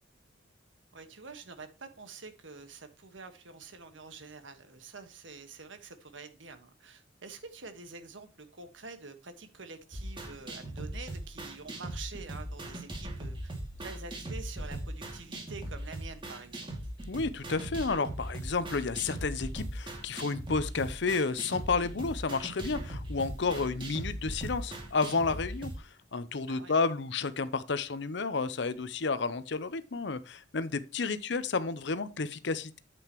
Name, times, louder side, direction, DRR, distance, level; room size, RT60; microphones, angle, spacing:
voice 1, 0.9-13.5 13.8-16.7 23.5-23.7 26.5-26.7, right 4 dB, 85° right, 1.5 m, -47 dB
sound 1, 9.9-25.8, right 1 dB, 25° right, 2.3 m, -39 dB
voice 2, 17.1-32.8, left 4 dB, 65° left, 0.7 m, -31 dB
8.9 x 7.9 x 3.0 m
head